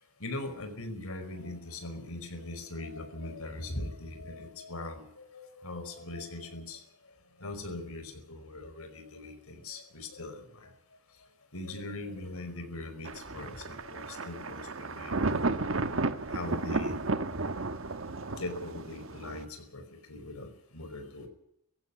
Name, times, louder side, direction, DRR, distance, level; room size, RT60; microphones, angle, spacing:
voice 1, 0.2-6.8 7.4-10.7 11.5-15.3 16.3-17.0 18.4-19.5 19.7-19.8 20.1-21.3, left 2 dB, 90° left, 7 dB, 5.0 m, -40 dB
Thunder, 13.0-19.4, right 3 dB, 70° right, 1.2 m, -33 dB
17.5 x 15.5 x 10.0 m, 0.72 s
head